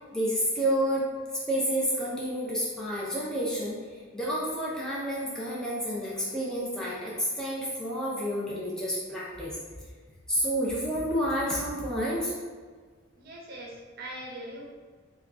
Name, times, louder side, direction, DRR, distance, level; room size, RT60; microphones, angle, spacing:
voice 1, 0.1-1.1 1.5-3.8 4.1-9.6 10.3-12.3, equal, 5° left, -7 dB, 0.5 m, -29 dB
voice 2, 13.2-14.6, right 1 dB, 50° right, -1 dB, 0.6 m, -41 dB
3.5 x 2.3 x 3.6 m, 1.5 s
head